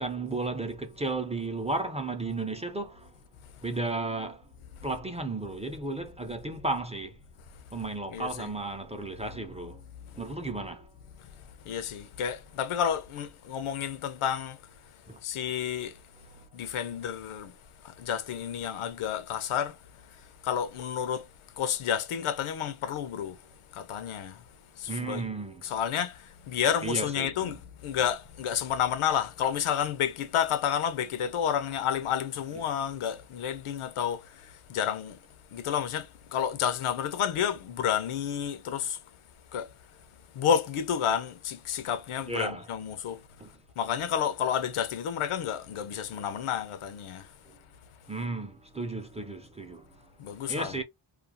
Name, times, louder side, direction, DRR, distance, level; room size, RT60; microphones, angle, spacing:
voice 1, 0.0-3.1 3.6-4.4 4.8-7.2 7.7-9.8 10.1-10.9 15.1-15.2 24.9-25.6 26.8-27.5 42.3-42.7 43.4-43.5 48.1-50.0 50.5-50.8, right 2 dB, 15° right, 0.4 m, -34 dB
voice 2, 8.1-8.5 11.6-14.6 15.2-16.0 16.5-17.5 17.8-19.8 20.4-21.3 21.6-23.4 23.7-24.4 24.8-25.3 25.6-35.2 35.5-39.0 39.5-39.7 40.3-43.2 43.8-47.3 50.2-50.8, left 8 dB, 85° left, 0.6 m, -30 dB
2.4 x 2.3 x 2.7 m
wide cardioid pair, 100°, 49 cm